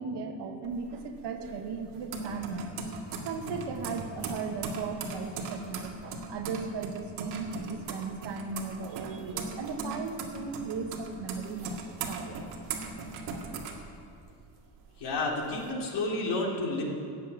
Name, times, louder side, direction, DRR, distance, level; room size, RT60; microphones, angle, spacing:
voice 1, 0.0-2.6 3.1-11.8 12.1-12.4, right 5 dB, 60° right, 4 dB, 1.7 m, -37 dB
sound 1, 0.6-14.5 14.9-15.7, right 4 dB, 80° right, 2.1 m, -39 dB
voice 2, 15.0-16.8, left 2 dB, 60° left, -2 dB, 3.3 m, -30 dB
13.5 x 7.3 x 8.9 m, 2.5 s
cardioid pair, 105°, 47 cm